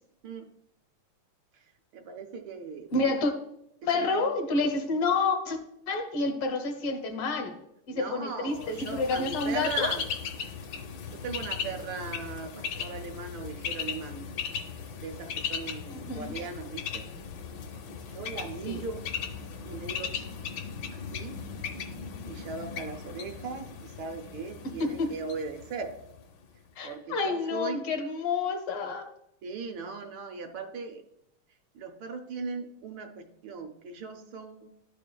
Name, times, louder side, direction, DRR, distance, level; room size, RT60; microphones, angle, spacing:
voice 1, 1.5-3.2 3.8-4.3 7.9-10.1 11.1-14.3 15.0-17.1 18.1-19.1 19.7-20.3 20.9-21.4 22.3-26.0 26.8-27.8 29.4-31.0 31.7-34.7, right 4 dB, 70° right, 5 dB, 1.4 m, -38 dB
voice 2, 2.9-3.3 3.8-5.6 5.9-7.6 7.9-9.9 15.9-16.3 18.7-18.8 24.8-25.1 26.8-29.1, left 3 dB, 85° left, 5 dB, 1.9 m, -29 dB
Bird, 8.5-26.3, left 7 dB, 70° left, 1.1 m, -37 dB
11.5 x 5.0 x 2.2 m, 0.80 s
omnidirectional pair, 2.3 m